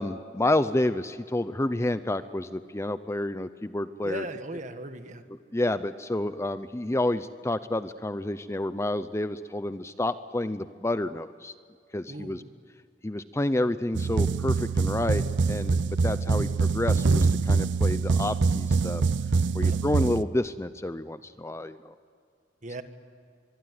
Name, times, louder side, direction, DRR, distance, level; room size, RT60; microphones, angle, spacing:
voice 1, 0.0-4.2 5.5-11.5 11.9-12.4 13.0-19.0 19.5-21.9, left 1 dB, 15° left, 13 dB, 0.6 m, -29 dB
voice 2, 4.0-5.2 12.1-12.4 19.6-19.8 22.6-22.8, right 1 dB, 40° right, 8 dB, 1.7 m, -38 dB
sound 1, 13.9-20.2, right 4 dB, 85° right, 0.6 m, -24 dB
24.0 x 23.0 x 9.5 m, 2.3 s
head